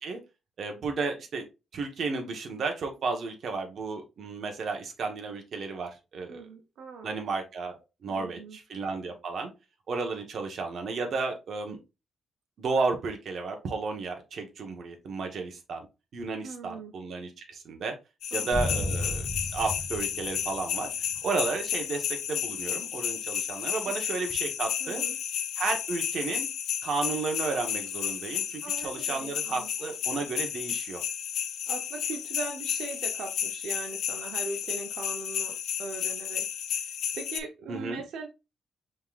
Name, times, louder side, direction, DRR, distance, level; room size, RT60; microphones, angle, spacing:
voice 1, 0.6-1.4 1.7-6.4 7.0-9.5 9.9-11.8 12.6-15.9 16.1-18.0 18.3-19.2 19.5-20.9 21.2-25.0 25.6-26.5 26.8-31.0 37.7-38.0, right 4 dB, 50° right, 4 dB, 1.1 m, -33 dB
voice 2, 6.3-7.1 8.1-8.6 16.4-16.9 18.3-18.9 23.8-23.9 24.8-25.2 28.6-29.7 31.7-36.5 36.9-38.3, right 4 dB, 85° right, 4 dB, 0.8 m, -40 dB
sound 1, 18.2-37.4, left 9 dB, 85° left, 0.6 m, -32 dB
sound 2, 18.5-21.3, left 1 dB, 20° right, 2.2 m, -34 dB
5.2 x 3.8 x 2.4 m, 0.27 s
wide cardioid pair, 160°, 0 cm